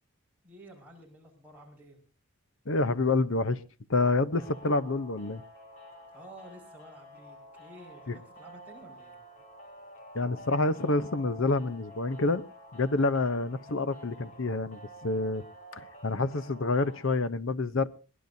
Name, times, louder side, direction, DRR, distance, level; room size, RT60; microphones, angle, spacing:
voice 1, 0.4-2.0 6.1-9.2, right 1 dB, 5° right, 5.6 m, -51 dB
voice 2, 2.7-3.6 3.9-5.4 8.1-8.2 10.1-12.4 12.7-15.5 15.7-17.9, left 3 dB, 60° left, 0.8 m, -28 dB
sound 1, 4.3-17.1, equal, 35° left, 3.1 m, -50 dB
22.5 x 18.5 x 2.7 m
head